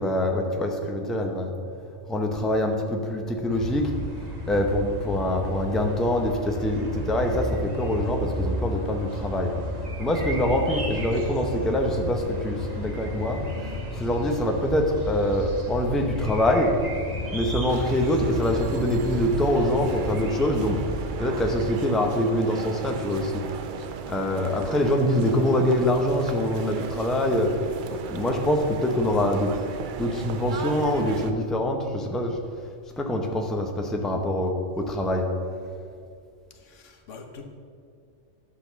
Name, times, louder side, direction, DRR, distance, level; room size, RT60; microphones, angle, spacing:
voice 1, 0.0-1.5 2.1-3.9 4.5-9.5 10.0-13.4 13.9-16.7 17.3-20.8 21.2-23.4 24.1-27.5 28.1-29.5 30.0-32.4 33.0-35.3, left 1 dB, ahead, 3 dB, 0.6 m, -24 dB
sound 1, 3.5-21.7, equal, 35° right, 1.3 m, -33 dB
sound 2, 17.7-31.3, right 6 dB, 55° right, 0.6 m, -36 dB
voice 2, 36.5-37.4, left 5 dB, 85° left, 5 dB, 1.3 m, -45 dB
11.0 x 4.1 x 6.8 m, 2.2 s
omnidirectional pair, 1.2 m